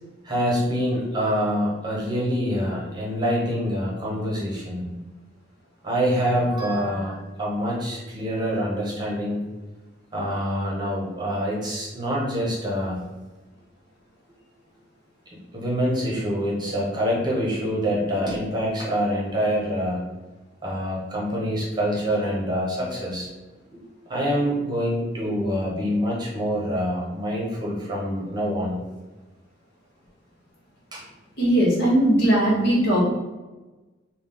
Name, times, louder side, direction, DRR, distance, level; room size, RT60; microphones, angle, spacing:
voice 1, 0.2-4.9 5.8-9.4 10.1-13.0 15.5-20.0 20.6-23.3 24.1-28.8 30.9-31.1, equal, 25° right, -4 dB, 0.9 m, -25 dB
voice 2, 31.4-33.0, right 1 dB, 60° left, -5 dB, 1.3 m, -19 dB
3.7 x 2.3 x 3.7 m, 1.2 s
head